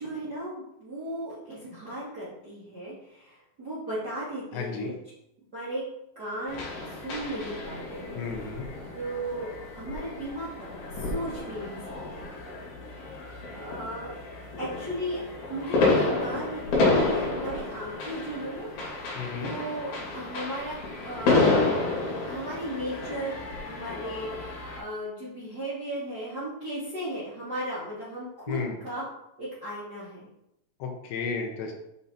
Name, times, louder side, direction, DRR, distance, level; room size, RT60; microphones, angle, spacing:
voice 1, 0.0-4.9 5.5-5.8 6.1-6.6 6.9-8.6 8.9-10.5 10.9-12.4 13.0-14.2 14.6-15.2 15.5-18.7 19.0-19.1 19.3-20.8 21.0-21.6 22.3-29.0 29.4-30.3, right 1 dB, 60° right, -8 dB, 1.0 m, -36 dB
voice 2, 4.5-4.9 8.2-8.7 19.2-19.5 28.5-28.8 30.8-31.7, left 5 dB, 70° left, 2 dB, 2.9 m, -33 dB
sound 1, 6.5-24.8, left 3 dB, 55° left, 4.0 m, -30 dB
8.7 x 5.8 x 4.1 m, 0.83 s
omnidirectional pair, 5.8 m